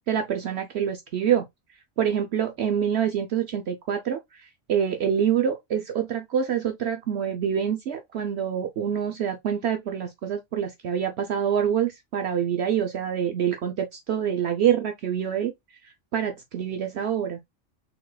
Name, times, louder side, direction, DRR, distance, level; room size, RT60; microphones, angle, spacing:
voice 1, 0.1-1.4 2.0-4.2 4.7-15.5 16.1-17.4, right 8 dB, 65° right, 0.9 m, -26 dB
5.5 x 3.9 x 2.2 m
omnidirectional pair, 1.3 m